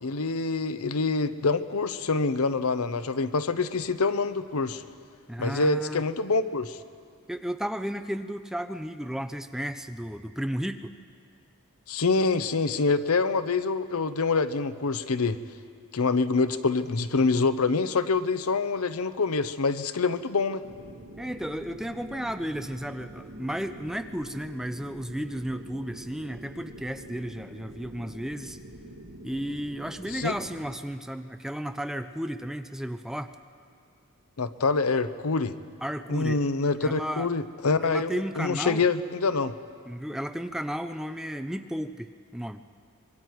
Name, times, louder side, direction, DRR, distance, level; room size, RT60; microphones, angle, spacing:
voice 1, 0.0-4.8 5.4-6.8 11.9-15.4 15.9-20.6 30.1-30.3 34.4-35.6 36.1-39.5, left 4 dB, 80° left, 12 dB, 0.8 m, -26 dB
voice 2, 5.3-6.0 7.3-10.9 21.2-28.6 29.2-33.3 35.8-36.4 36.8-37.3 37.8-38.8 39.9-42.6, equal, ahead, 8 dB, 0.5 m, -33 dB
sound 1, 20.6-30.7, right 1 dB, 80° right, 1.8 m, -45 dB
25.5 x 22.5 x 4.7 m, 2.2 s
head